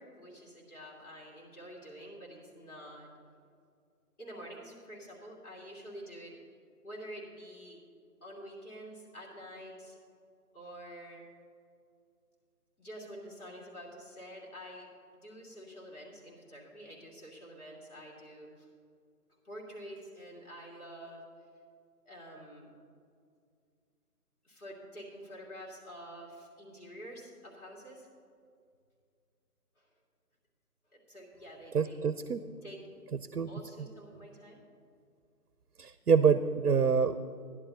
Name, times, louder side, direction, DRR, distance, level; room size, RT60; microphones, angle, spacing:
voice 1, 0.0-3.1 4.2-6.4 6.8-7.8 8.2-10.0 10.5-11.2 12.8-18.7 19.4-21.3 22.0-22.7 24.4-28.1 29.8-29.9 30.9-32.0 32.6-32.8 33.5-34.6, equal, 65° left, -3 dB, 2.9 m, -48 dB
voice 2, 31.7-32.4 33.3-33.5 35.8-37.2, right 6 dB, 70° right, 13 dB, 0.6 m, -26 dB
13.5 x 11.0 x 4.0 m, 2.3 s
figure-of-eight pair, 160°, 46 cm